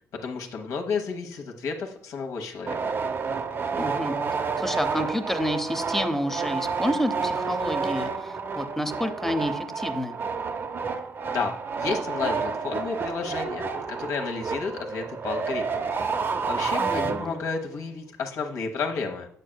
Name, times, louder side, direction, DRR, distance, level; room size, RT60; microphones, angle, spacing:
voice 1, 0.2-2.8 11.3-13.6 14.0-19.3, left 5 dB, 70° left, 3 dB, 1.1 m, -32 dB
sound 1, 2.7-17.6, right 5 dB, 40° right, 0.6 m, -30 dB
voice 2, 3.7-4.2 4.6-10.2 16.8-17.4, equal, 5° left, 9 dB, 0.7 m, -29 dB
7.5 x 6.5 x 2.2 m, 0.66 s
cardioid pair, 80°, 6 cm